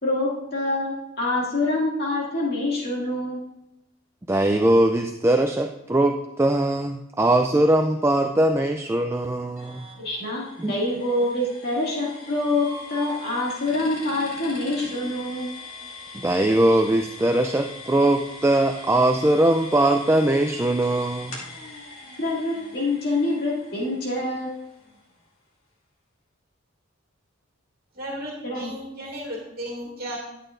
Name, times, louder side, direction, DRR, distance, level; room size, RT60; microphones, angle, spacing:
voice 1, 0.0-3.4 10.0-15.5 22.2-24.5 28.4-28.7, left 2 dB, 50° left, -5 dB, 2.3 m, -26 dB
voice 2, 4.3-9.9 10.6-10.7 16.1-21.4, right 1 dB, 10° right, 5 dB, 0.3 m, -21 dB
sound 1, 9.6-25.2, left 2 dB, 85° left, 2.3 m, -42 dB
voice 3, 27.9-30.2, equal, 45° right, -3 dB, 2.0 m, -34 dB
11.0 x 8.2 x 2.6 m, 0.90 s
head